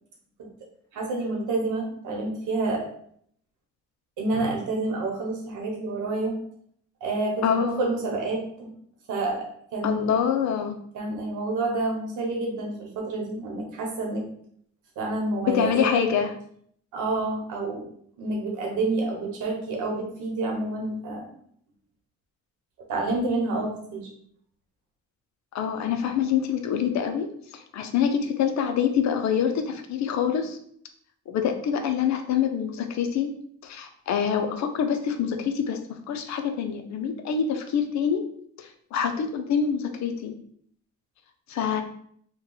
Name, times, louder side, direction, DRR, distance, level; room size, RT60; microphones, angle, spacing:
voice 1, 0.9-2.9 4.2-6.4 7.0-8.7 9.1-9.4 9.7-10.1 10.9-14.2 15.0-15.9 16.9-17.8 18.2-21.3 22.9-24.1, right 2 dB, 85° right, 0 dB, 1.1 m, -28 dB
voice 2, 7.4-7.8 9.8-10.8 15.4-16.3 25.5-30.6 31.3-33.3 33.6-38.3 38.6-40.4 41.5-41.8, left 7 dB, 65° left, 7 dB, 0.6 m, -26 dB
2.9 x 2.3 x 3.8 m, 0.65 s
cardioid pair, 90°, 30 cm